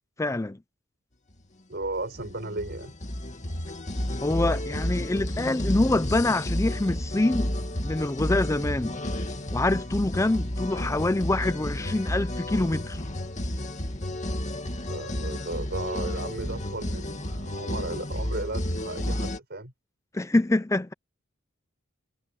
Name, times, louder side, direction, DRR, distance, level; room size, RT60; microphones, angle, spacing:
voice 1, 0.2-0.6 4.2-7.5 7.8-9.0 9.5-13.0 20.1-20.9, left 2 dB, 15° left, 0.5 m, -25 dB
sound 1, 1.7-19.4, left 1 dB, 40° left, 2.2 m, -31 dB
voice 2, 1.7-2.9 14.9-19.7, right 2 dB, 55° right, 6.6 m, -35 dB
head